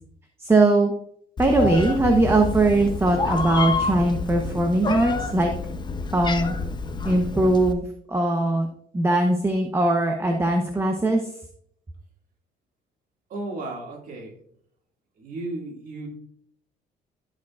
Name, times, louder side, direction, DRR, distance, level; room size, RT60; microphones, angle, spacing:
voice 1, 0.4-0.9 1.4-5.5 6.1-6.5 7.0-8.7 8.9-11.2, right 2 dB, 15° right, 3 dB, 0.9 m, -20 dB
Meow, 1.4-7.7, left 4 dB, 25° left, 0.7 m, -28 dB
voice 2, 13.3-14.4 15.2-16.1, right 2 dB, 55° right, 0 dB, 2.2 m, -34 dB
14.5 x 5.0 x 2.4 m, 0.67 s
cardioid pair, 110°, 17 cm